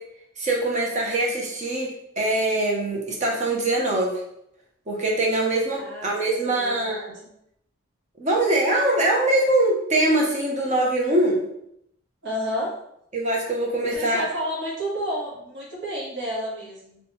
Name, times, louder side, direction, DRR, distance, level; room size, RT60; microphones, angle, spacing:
voice 1, 0.4-4.2 4.9-7.1 8.2-11.4 13.1-14.2, right 1 dB, 35° right, -2 dB, 0.7 m, -23 dB
voice 2, 5.8-6.9 7.2-7.3 12.2-12.8 13.8-17.0, equal, 55° right, -4 dB, 1.4 m, -31 dB
3.2 x 3.2 x 3.0 m, 0.75 s
head